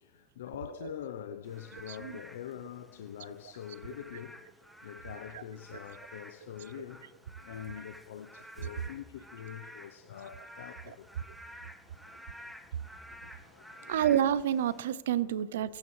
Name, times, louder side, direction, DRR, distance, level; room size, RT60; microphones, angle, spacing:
voice 1, 0.0-11.1 11.6-12.2 13.2-13.9 15.1-15.3, left 9 dB, 85° left, 0.6 m, -45 dB
Frog / Rain, 1.4-14.9, equal, ahead, 1.4 m, -51 dB
voice 2, 13.9-15.8, right 10 dB, 85° right, 0.5 m, -28 dB
22.5 x 8.5 x 3.2 m
hypercardioid pair, 90°, 0 cm